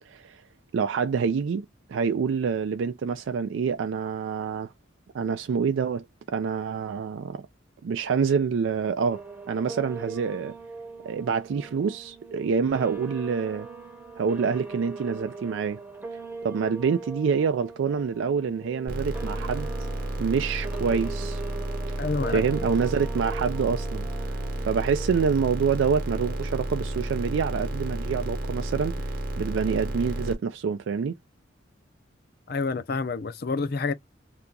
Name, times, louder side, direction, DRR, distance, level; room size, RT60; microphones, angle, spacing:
voice 1, 0.1-0.4 0.7-4.7 5.1-7.5 7.8-9.2 9.5-10.5 11.0-13.7 14.2-15.8 16.4-19.9 20.2-21.4 22.3-24.3 24.6-29.0 29.4-31.1, right 6 dB, 80° right, 0.4 m, -27 dB
sound 1, 9.1-25.4, right 4 dB, 10° right, 0.7 m, -41 dB
sound 2, 18.9-30.3, right 1 dB, 50° right, 0.9 m, -32 dB
voice 2, 22.0-22.6 32.5-33.9, left 4 dB, 55° left, 0.5 m, -28 dB
2.8 x 2.3 x 3.7 m
head